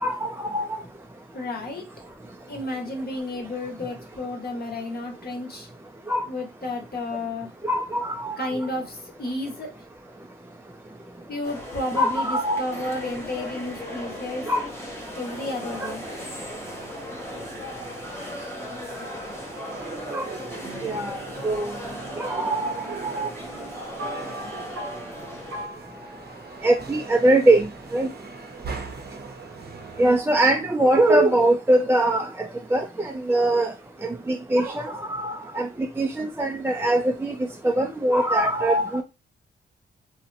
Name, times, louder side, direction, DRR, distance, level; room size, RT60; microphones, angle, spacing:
voice 1, 0.0-0.8 6.1-6.3 7.6-8.5 12.0-12.6 14.5-14.7 15.8-15.9 20.1-20.2 20.8-21.2 21.4-21.8 22.2-23.3 26.6-27.7 27.9-28.1 30.0-33.7 34.0-35.7 36.0-37.3 37.6-39.0, right 1 dB, 10° right, 0.3 m, -22 dB
voice 2, 1.3-1.8 2.5-5.7 6.3-7.5 8.4-9.7 11.3-14.4 15.2-16.0 30.0-30.2, left 2 dB, 50° left, 1.0 m, -32 dB
sound 1, 11.4-25.7, left 1 dB, 10° left, 0.8 m, -37 dB
sound 2, 12.7-30.2, right 4 dB, 50° right, 0.7 m, -42 dB
sound 3, 20.6-27.6, equal, 85° right, 0.8 m, -41 dB
2.7 x 2.0 x 2.6 m
cardioid pair, 70°, 21 cm